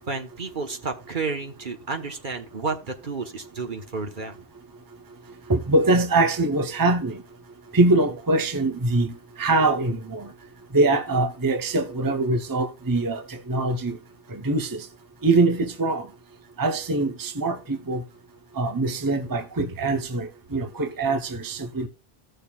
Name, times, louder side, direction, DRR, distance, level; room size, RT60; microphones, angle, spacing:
voice 1, 0.1-4.4 20.6-20.7, right 4 dB, 55° right, 1.3 m, -31 dB
voice 2, 5.5-7.2 7.7-10.3 10.7-14.0 14.3-14.9 15.2-16.1 16.6-18.0 18.5-21.9, right 2 dB, 20° right, 0.8 m, -23 dB
16.0 x 6.5 x 2.4 m
omnidirectional pair, 1.0 m